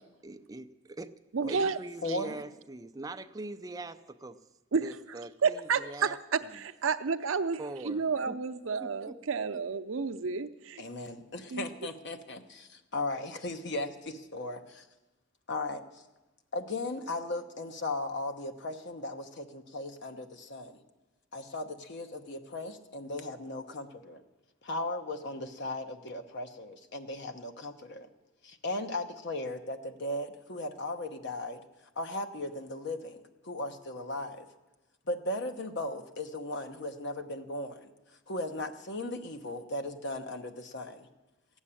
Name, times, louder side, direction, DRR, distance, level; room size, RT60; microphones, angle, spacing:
voice 1, 0.2-1.1 1.5-4.4 4.8-6.2 7.6-8.4 8.8-9.2, right 2 dB, 20° right, 7 dB, 0.5 m, -42 dB
voice 2, 1.3-1.8 2.1-2.2 4.7-5.0 5.4-10.8 11.5-11.7, right 5 dB, 75° right, 11 dB, 0.6 m, -31 dB
voice 3, 2.0-2.4 10.8-14.9 15.5-15.8 16.5-20.8 21.3-24.2 24.6-28.1 28.4-31.6 32.0-34.5 35.1-37.9 38.3-41.1, left 2 dB, 55° left, 7 dB, 1.0 m, -37 dB
14.5 x 7.3 x 9.9 m, 1.1 s
head